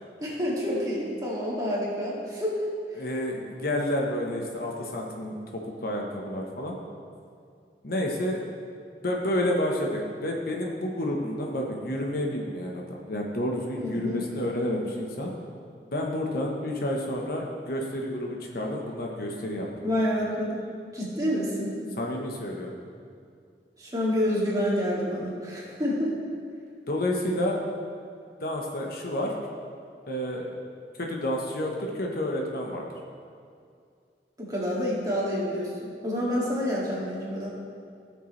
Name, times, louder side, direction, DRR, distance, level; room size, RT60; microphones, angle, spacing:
voice 1, 0.2-2.5 13.7-14.2 19.8-20.6 20.9-21.8 23.8-26.2 34.4-37.5, equal, 20° right, -6 dB, 2.3 m, -28 dB
voice 2, 3.0-5.3 5.8-6.8 7.8-8.4 9.0-15.3 15.9-19.7 22.0-22.8 26.9-27.6 28.4-29.3 30.1-30.5 31.0-32.8, left 1 dB, 55° left, 0 dB, 1.1 m, -30 dB
16.5 x 6.7 x 3.3 m, 2.3 s
head